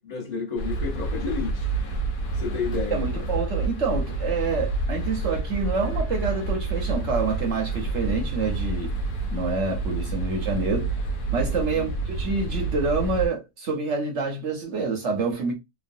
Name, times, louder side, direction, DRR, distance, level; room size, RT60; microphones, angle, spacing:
voice 1, 0.0-1.7 2.3-3.0 11.4-11.9, left 5 dB, 30° left, 0.9 m, -31 dB
sound 1, 0.6-13.3, right 3 dB, 75° left, 1.2 m, -28 dB
voice 2, 2.9-8.9 9.3-11.0 11.3-15.5, right 4 dB, 60° right, 0.9 m, -27 dB
3.1 x 2.2 x 2.5 m
omnidirectional pair, 1.7 m